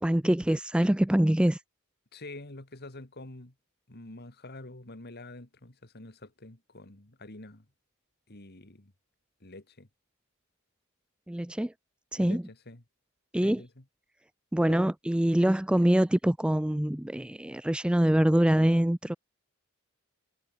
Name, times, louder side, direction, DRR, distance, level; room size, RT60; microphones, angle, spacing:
voice 1, 0.0-1.6 11.3-11.7 12.1-12.4 13.3-13.6 14.5-19.1, right 1 dB, 5° right, 0.3 m, -24 dB
voice 2, 2.1-3.5 3.9-7.6 8.3-8.9 9.4-9.9 12.2-12.4 12.7-12.8 13.4-13.8 14.7-14.8, left 2 dB, 45° left, 2.4 m, -46 dB
head